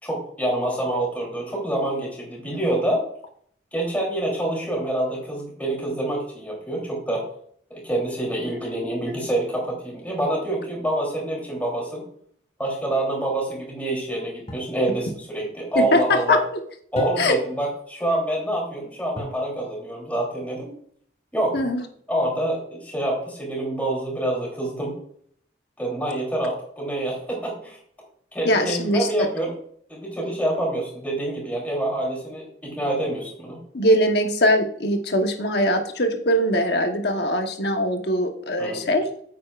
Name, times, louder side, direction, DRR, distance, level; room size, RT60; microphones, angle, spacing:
voice 1, 0.0-3.1 3.7-7.2 7.7-12.0 12.6-16.4 16.9-20.7 21.3-21.6 22.1-25.0 25.8-27.8 28.3-29.5 29.9-33.6 38.6-38.9, right 1 dB, 10° left, -2 dB, 3.3 m, -26 dB
sound 1, 14.5-14.8 16.9-17.6 19.1-19.5 21.6-22.1, equal, 35° left, 2.1 m, -36 dB
voice 2, 15.7-16.4 17.2-17.4 21.5-21.8 28.4-29.3 33.7-39.1, left 1 dB, 60° left, 4 dB, 1.2 m, -21 dB
9.2 x 8.3 x 2.5 m, 0.62 s
head